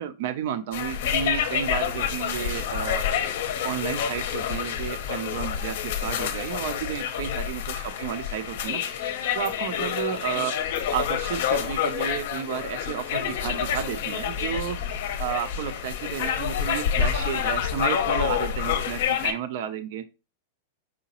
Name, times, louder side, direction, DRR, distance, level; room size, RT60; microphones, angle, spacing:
voice 1, 0.0-3.1 3.6-10.6 10.9-14.8 15.2-20.1, right 9 dB, 50° right, 9 dB, 0.4 m, -32 dB
sound 1, 0.7-19.3, left 8 dB, 55° left, 0.7 m, -28 dB
4.9 x 3.8 x 2.9 m, 0.30 s
supercardioid pair, 170°, 0 cm